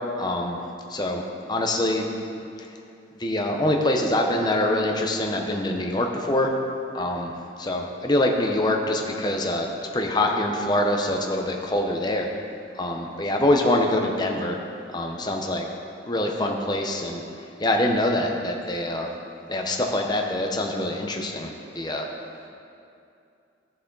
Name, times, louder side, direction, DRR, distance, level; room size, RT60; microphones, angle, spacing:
voice 1, 0.2-0.6 0.9-2.1 2.6-2.7 3.2-6.5 6.9-7.3 7.6-12.3 12.8-14.6 14.9-15.7 16.1-17.2 17.6-19.1 19.5-22.1, left 1 dB, 20° left, 1 dB, 0.8 m, -24 dB
15.0 x 6.3 x 4.0 m, 2.6 s
head